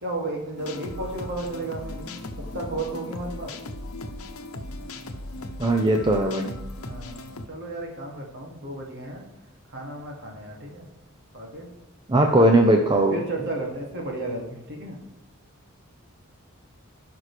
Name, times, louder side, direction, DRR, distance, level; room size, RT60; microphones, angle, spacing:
voice 1, 0.0-2.1 2.5-3.5 6.9-9.2 9.7-10.9 11.3-11.7 12.2-12.5 13.1-15.0, right 2 dB, 55° right, -1 dB, 2.4 m, -33 dB
sound 1, 0.6-7.5, left 2 dB, 80° left, 0.9 m, -37 dB
voice 2, 5.6-6.5 12.1-13.2, right 1 dB, 20° right, 2 dB, 0.7 m, -19 dB
17.0 x 6.0 x 3.3 m, 0.98 s
head